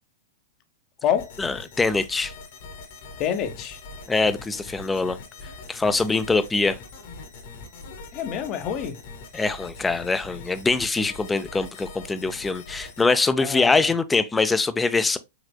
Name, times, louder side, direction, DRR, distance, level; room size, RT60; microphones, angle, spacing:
sound 1, 1.2-13.0, left 4 dB, 60° left, 1.3 m, -42 dB
voice 1, 1.4-2.3 4.1-5.2 5.7-6.8 9.3-15.2, left 3 dB, 10° left, 0.4 m, -23 dB
voice 2, 3.2-3.8 8.1-9.0 13.4-13.9, left 9 dB, 40° left, 0.8 m, -27 dB
4.9 x 3.4 x 2.2 m
hypercardioid pair, 110°, 0 cm